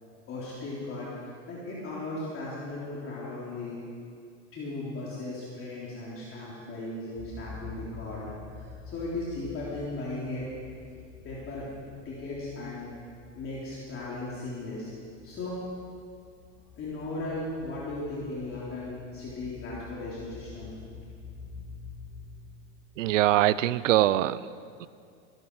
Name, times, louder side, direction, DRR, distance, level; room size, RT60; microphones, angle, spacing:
voice 1, 0.3-3.8 4.5-10.5 11.2-11.7 12.0-12.9 13.4-14.9 15.2-15.6 16.8-20.7, left 2 dB, 35° left, -7 dB, 3.8 m, -37 dB
sound 1, 7.1-22.8, left 4 dB, 75° left, 2.4 m, -47 dB
voice 2, 23.0-24.9, right 14 dB, 85° right, 18 dB, 0.6 m, -24 dB
18.5 x 12.0 x 4.9 m, 2.3 s
supercardioid pair, 110°, 37 cm